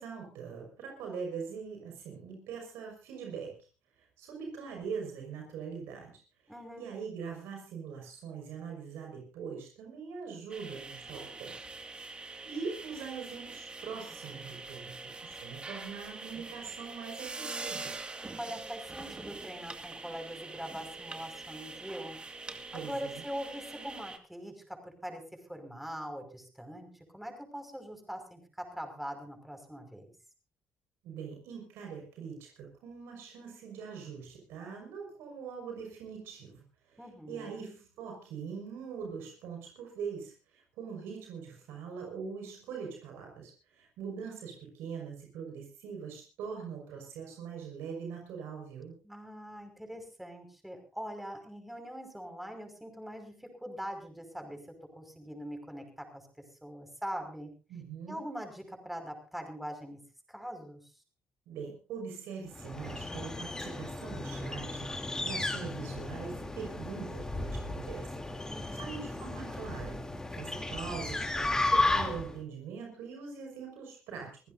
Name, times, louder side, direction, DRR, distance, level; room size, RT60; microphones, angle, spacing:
voice 1, 0.0-3.7 4.0-11.6 12.4-17.9 22.7-23.2 31.0-37.0 37.3-48.9 57.7-58.2 61.5-70.0 70.3-74.4, right 6 dB, 85° right, 1 dB, 5.7 m, -42 dB
voice 2, 6.5-6.9 18.4-22.2 22.7-30.1 37.0-37.8 49.0-54.6 54.9-56.3 56.6-57.5 58.1-60.0 60.3-60.9 68.5-68.9, equal, 5° right, 5 dB, 5.6 m, -42 dB
sound 1, 10.5-24.2, right 3 dB, 25° right, 2.2 m, -44 dB
sound 2, 62.5-72.4, left 2 dB, 15° left, 3.2 m, -34 dB
25.5 x 15.5 x 2.7 m, 0.33 s
cardioid pair, 90°, 4 cm